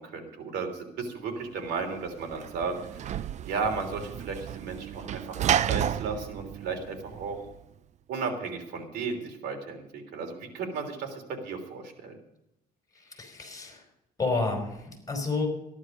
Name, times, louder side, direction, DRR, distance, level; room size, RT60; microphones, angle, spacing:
voice 1, 0.0-7.4 8.1-12.1, right 4 dB, 75° right, 3 dB, 3.2 m, -34 dB
Sliding door / Slam, 1.7-7.6, right 10 dB, 45° right, 0.5 m, -32 dB
voice 2, 12.9-13.8 14.2-15.5, left 3 dB, 20° left, 3 dB, 4.8 m, -30 dB
14.5 x 11.0 x 5.3 m, 0.84 s
cardioid pair, 110°, 17 cm